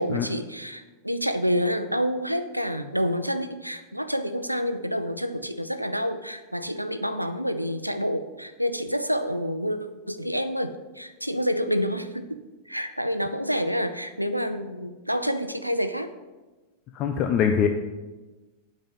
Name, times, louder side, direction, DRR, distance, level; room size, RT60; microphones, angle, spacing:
voice 1, 0.0-9.8 10.1-16.1, equal, 90° right, 10 dB, 0.6 m, -28 dB
voice 2, 16.9-17.7, left 8 dB, 35° left, 4 dB, 0.7 m, -22 dB
8.7 x 5.5 x 7.7 m, 1.2 s
figure-of-eight pair, 90°, 0 cm